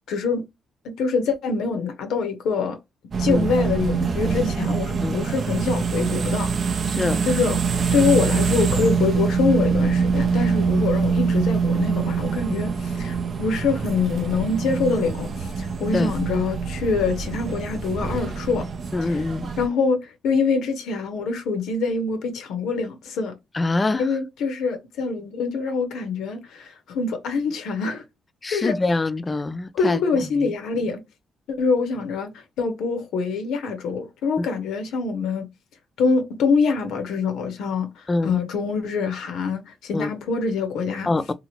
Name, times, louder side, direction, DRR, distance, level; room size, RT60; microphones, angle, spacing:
voice 1, 0.1-0.5 0.8-2.8 3.2-6.5 7.3-7.6 7.9-18.7 19.0-19.2 19.6-23.3 24.0-28.0 28.5-28.7 29.7-31.0 31.5-32.3 32.6-35.5 36.0-37.9 38.2-41.1, left 4 dB, 80° left, 0.6 m, -25 dB
sound 1, 3.1-19.7, right 5 dB, 60° right, 0.5 m, -24 dB
voice 2, 5.0-5.3 6.9-7.3 15.9-16.1 18.9-19.5 23.5-24.0 28.4-30.5 34.4-34.5 38.1-38.4 39.9-40.1 41.1-41.3, left 2 dB, 30° left, 0.4 m, -25 dB
2.8 x 2.4 x 3.0 m
supercardioid pair, 60°, 0 cm